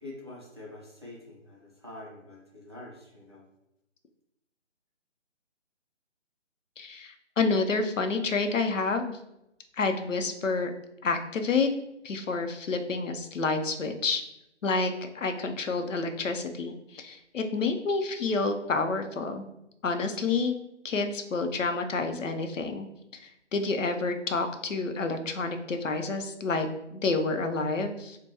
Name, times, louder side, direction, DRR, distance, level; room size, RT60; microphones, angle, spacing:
voice 1, 0.0-3.4, left 2 dB, 25° right, -5 dB, 0.5 m, -45 dB
voice 2, 6.8-9.2 9.8-10.7 11.0-11.7 12.0-14.2 14.6-19.4 19.8-20.5 20.8-22.9 23.1-28.2, left 4 dB, 90° left, 6 dB, 0.6 m, -29 dB
4.6 x 2.2 x 2.8 m, 0.86 s
figure-of-eight pair, 155°, 37 cm